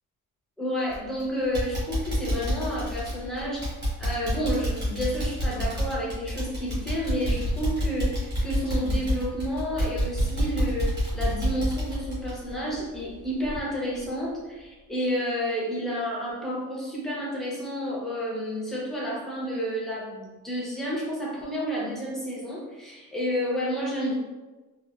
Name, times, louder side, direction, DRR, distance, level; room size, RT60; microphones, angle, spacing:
voice 1, 0.6-3.7 4.0-24.1, equal, ahead, -6 dB, 0.6 m, -30 dB
sound 1, 0.9-1.2 1.5-13.1 13.4-13.6 14.1-14.2, equal, 35° right, 1.2 m, -28 dB
3.5 x 2.3 x 2.2 m, 1.2 s
wide cardioid pair, 175°, 31 cm